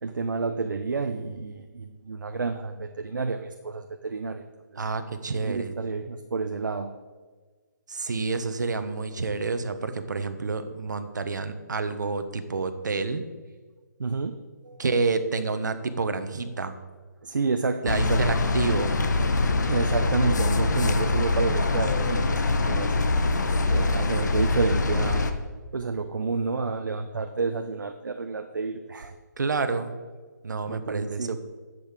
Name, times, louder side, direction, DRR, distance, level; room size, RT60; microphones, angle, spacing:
voice 1, 0.0-4.5 5.4-6.9 14.0-14.4 14.6-14.8 17.2-18.4 19.7-23.0 23.7-25.3 25.7-29.1 30.7-31.4, right 4 dB, 85° right, 6 dB, 0.9 m, -30 dB
voice 2, 4.8-5.7 7.9-13.2 14.8-16.8 17.8-19.0 29.4-29.9 30.4-31.4, right 4 dB, 70° right, 9 dB, 1.4 m, -28 dB
sound 1, 17.9-25.3, left 3 dB, 65° left, 1.2 m, -24 dB
10.5 x 8.0 x 6.7 m, 1.4 s
hypercardioid pair, 170°, 10 cm